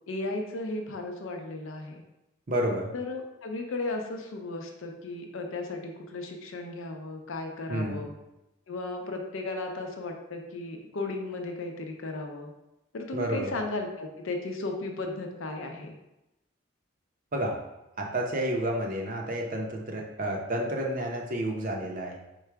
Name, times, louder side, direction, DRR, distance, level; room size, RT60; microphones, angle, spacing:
voice 1, 0.1-2.0 2.9-8.1 8.7-12.5 12.9-15.9, left 2 dB, 70° left, 3 dB, 0.6 m, -35 dB
voice 2, 2.5-2.9 7.7-8.0 13.1-13.5 17.3-17.6 18.0-22.2, right 1 dB, 40° right, 1 dB, 0.6 m, -30 dB
4.6 x 2.2 x 4.6 m, 0.94 s
head